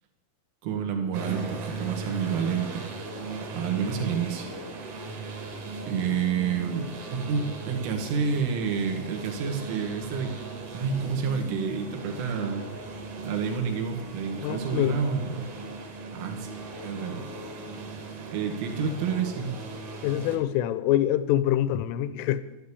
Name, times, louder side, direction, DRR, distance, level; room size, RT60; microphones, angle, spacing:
voice 1, 0.6-2.8 3.5-4.5 5.9-10.4 10.7-12.7 13.2-15.5 16.1-16.5 16.8-17.2 17.5-17.8 18.3-19.6, right 6 dB, 80° right, 5 dB, 4.3 m, -29 dB
sound 1, 1.1-20.4, right 3 dB, 50° right, 3.2 m, -38 dB
voice 2, 14.4-15.0 20.0-22.4, left 12 dB, 85° left, 13 dB, 3.3 m, -25 dB
12.5 x 11.5 x 8.5 m, 1.0 s
omnidirectional pair, 5.6 m